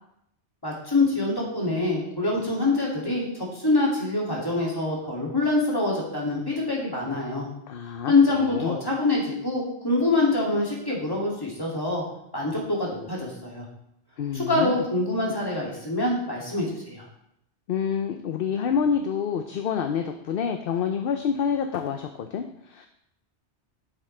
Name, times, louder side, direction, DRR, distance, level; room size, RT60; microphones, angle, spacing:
voice 1, 0.6-3.3 3.5-7.5 8.1-12.0 12.3-13.7 14.3-17.0, left 2 dB, 20° left, -4 dB, 2.5 m, -25 dB
voice 2, 7.7-8.8 14.2-14.8 17.7-22.9, left 7 dB, 60° left, 6 dB, 0.7 m, -28 dB
9.2 x 7.6 x 3.3 m, 0.77 s
omnidirectional pair, 1.2 m